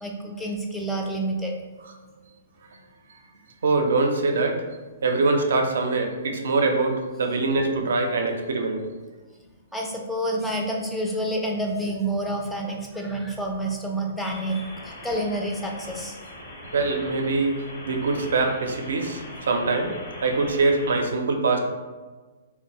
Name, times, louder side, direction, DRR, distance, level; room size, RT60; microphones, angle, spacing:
voice 1, 0.0-1.5 9.7-16.2, right 1 dB, 5° left, -1 dB, 0.4 m, -28 dB
voice 2, 3.6-4.6 5.0-8.8 16.7-20.0 20.2-21.6, right 3 dB, 75° right, 3 dB, 0.4 m, -23 dB
sound 1, 14.3-21.0, left 1 dB, 70° left, 0.9 m, -41 dB
2.6 x 2.1 x 2.9 m, 1.3 s
hypercardioid pair, 140°, 0 cm